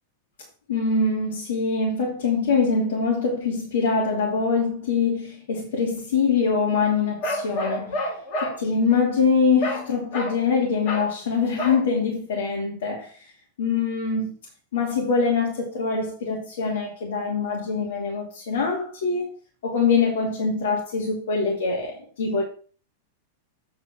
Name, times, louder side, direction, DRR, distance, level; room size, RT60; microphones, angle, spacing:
voice 1, 0.7-8.1 8.4-13.3 13.6-14.3 14.7-19.3 19.6-22.4, left 5 dB, 85° left, 2.7 m, -24 dB
Bark, 7.2-8.6 9.6-9.9 10.1-10.4 10.8-11.1 11.6-11.9, equal, 50° left, 2.7 m, -28 dB
8.5 x 4.4 x 6.1 m
supercardioid pair, 145°, 0 cm